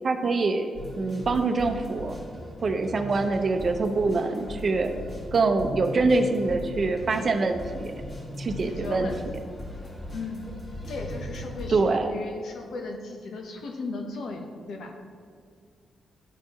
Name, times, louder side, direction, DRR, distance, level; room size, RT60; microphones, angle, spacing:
voice 1, 0.0-2.2 2.6-4.9 5.3-7.9 8.4-9.1 11.7-12.1, right 3 dB, 40° right, 6 dB, 0.7 m, -25 dB
sound 1, 0.7-11.8, left 1 dB, 40° left, 1.7 m, -39 dB
voice 2, 8.6-9.3 10.1-10.5 10.9-14.9, left 3 dB, 75° left, 3 dB, 1.0 m, -36 dB
12.0 x 4.4 x 3.1 m, 2.2 s
cardioid pair, 120°, 0 cm